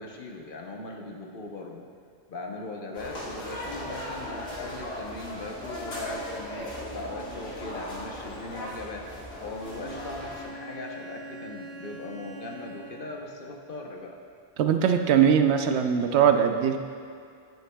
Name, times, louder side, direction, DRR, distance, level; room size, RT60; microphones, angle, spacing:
voice 1, 0.0-1.8 2.3-14.2, left 2 dB, 55° left, 1 dB, 0.9 m, -39 dB
sound 1, 2.9-10.4, left 1 dB, 75° left, 1.7 m, -37 dB
Bowed string instrument, 9.6-13.4, right 2 dB, 60° right, 0.9 m, -44 dB
voice 2, 14.6-16.8, right 8 dB, 85° right, 7 dB, 0.9 m, -21 dB
9.7 x 9.1 x 2.2 m, 2.3 s
omnidirectional pair, 1.1 m